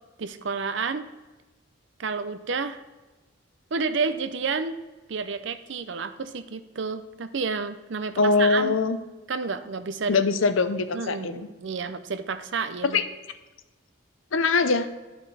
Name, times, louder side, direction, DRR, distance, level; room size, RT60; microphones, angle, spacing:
voice 1, 0.2-1.1 2.0-2.8 3.7-4.8 5.1-8.8 9.3-10.2 10.9-13.0, right 5 dB, 70° right, 11 dB, 0.6 m, -30 dB
voice 2, 8.2-9.0 10.1-11.5 12.8-13.0 14.3-14.9, left 4 dB, 85° left, 11 dB, 0.6 m, -22 dB
11.5 x 5.9 x 4.2 m, 1.2 s
head